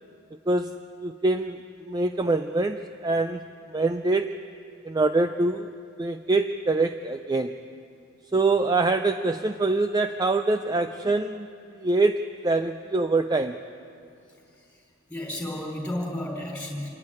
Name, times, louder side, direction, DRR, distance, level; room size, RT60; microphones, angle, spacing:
voice 1, 1.0-3.4 3.7-4.4 4.8-5.7 6.0-7.6 8.3-11.5 11.7-13.6, right 2 dB, 20° right, 8 dB, 0.4 m, -24 dB
voice 2, 14.5-16.9, left 1 dB, 5° left, -1 dB, 3.8 m, -33 dB
26.0 x 11.0 x 9.8 m, 2.6 s
head